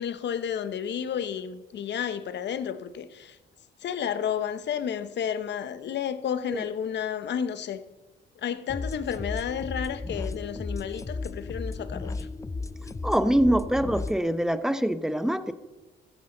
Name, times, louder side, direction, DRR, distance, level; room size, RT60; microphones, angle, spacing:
voice 1, 0.0-3.4 3.8-7.8 8.4-12.3, left 8 dB, 60° left, 1.0 m, -31 dB
sound 1, 8.7-14.2, left 3 dB, 15° left, 0.5 m, -34 dB
voice 2, 13.0-15.5, right 1 dB, 5° right, 0.9 m, -24 dB
15.0 x 14.0 x 3.9 m
cardioid pair, 90°, 20 cm